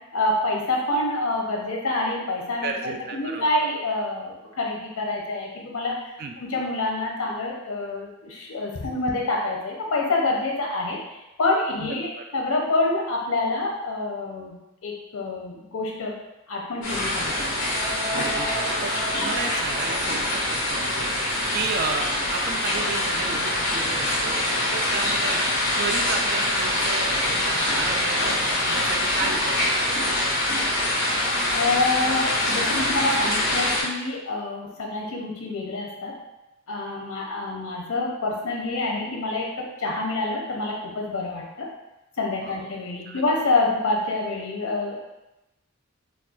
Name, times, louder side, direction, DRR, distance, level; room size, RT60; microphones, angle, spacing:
voice 1, 0.1-11.0 11.4-16.2 16.5-17.5 18.2-18.5 31.5-36.1 36.7-41.7 42.2-45.1, left 2 dB, 90° left, -1 dB, 0.7 m, -27 dB
voice 2, 2.6-3.5 6.2-6.3 11.8-12.2 18.1-18.9 19.2-30.2 42.4-42.7 43.1-43.2, right 4 dB, 45° right, 3 dB, 0.3 m, -33 dB
sound 1, 16.8-33.8, left 1 dB, 65° left, 1.4 m, -24 dB
4.1 x 2.3 x 2.4 m, 0.95 s
head